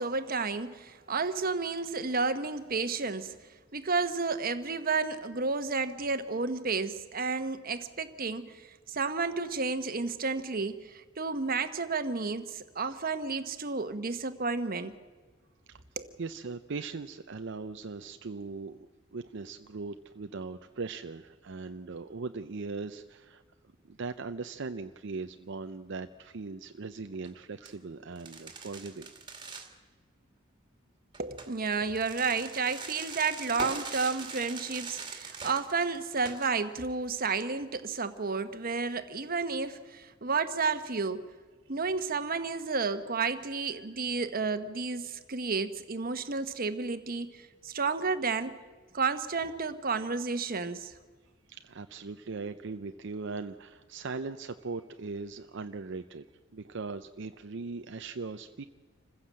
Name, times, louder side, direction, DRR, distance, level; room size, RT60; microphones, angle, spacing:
voice 1, 0.0-3.4 3.7-14.9 16.0-16.1 31.2-41.3 41.7-48.6 48.9-50.9, right 4 dB, 50° right, 1.2 m, -31 dB
voice 2, 16.2-18.9 19.1-23.4 23.8-29.1 51.5-56.2 56.5-58.6, right 4 dB, 65° right, 0.6 m, -39 dB
sound 1, 27.1-27.3 27.7-27.8 28.2-29.7 31.1-36.5, right 4 dB, 25° right, 2.2 m, -42 dB
26.5 x 15.5 x 7.6 m
head